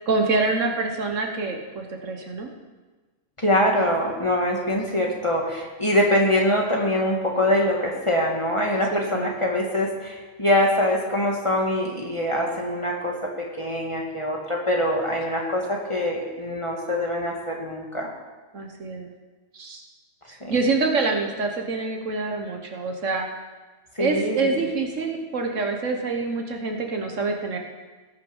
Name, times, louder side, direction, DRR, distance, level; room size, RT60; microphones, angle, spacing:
voice 1, 0.1-2.5 8.9-9.3 18.5-19.1 19.5-19.8 20.5-23.3 24.0-27.6, right 3 dB, 60° right, 3 dB, 1.5 m, -26 dB
voice 2, 3.4-18.1 20.4-20.5 24.0-24.6, left 1 dB, 20° left, -1 dB, 1.6 m, -24 dB
18.5 x 6.5 x 5.5 m, 1.3 s
omnidirectional pair, 1.5 m